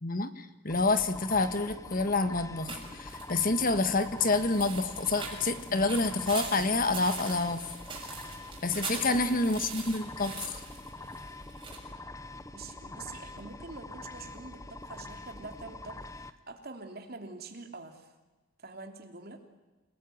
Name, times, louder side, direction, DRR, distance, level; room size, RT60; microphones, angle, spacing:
voice 1, 0.0-7.6 8.6-10.6, left 3 dB, 40° left, 10 dB, 1.5 m, -28 dB
sound 1, 0.7-16.3, left 2 dB, 15° left, 0.9 m, -45 dB
sound 2, 2.7-11.8, right 5 dB, 25° right, 6.8 m, -43 dB
voice 2, 8.8-9.2 12.5-18.1 18.6-19.4, right 3 dB, 45° right, 5 dB, 3.0 m, -45 dB
28.5 x 19.0 x 9.3 m, 1.2 s
head